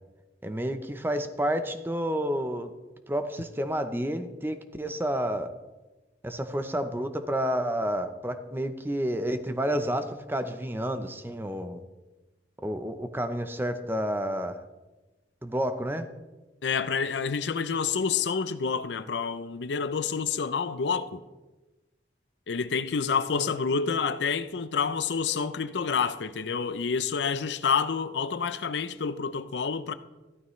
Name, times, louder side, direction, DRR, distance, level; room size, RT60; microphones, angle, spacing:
voice 1, 0.4-2.7 3.1-5.5 6.2-11.8 12.6-14.6 15.4-16.1 23.4-23.5, equal, 10° right, 0.6 m, -30 dB
voice 2, 16.6-21.2 22.5-29.9, left 5 dB, 80° left, 0.5 m, -28 dB
14.0 x 12.5 x 3.2 m
head